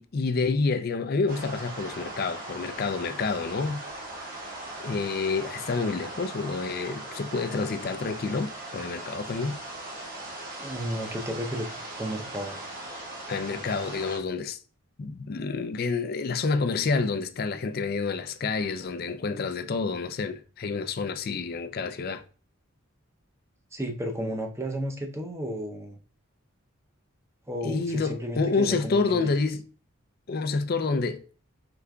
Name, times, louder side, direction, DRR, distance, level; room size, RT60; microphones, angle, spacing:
voice 1, 0.0-3.8 4.8-9.6 13.3-14.6 15.0-22.2 27.6-29.6 30.3-31.2, left 4 dB, 45° left, 0.4 m, -28 dB
sound 1, 1.3-14.2, right 2 dB, 45° right, 1.2 m, -39 dB
voice 2, 10.6-11.7 11.9-12.6 23.7-26.0 27.5-29.3, equal, 15° right, 0.6 m, -33 dB
4.9 x 3.4 x 2.3 m
head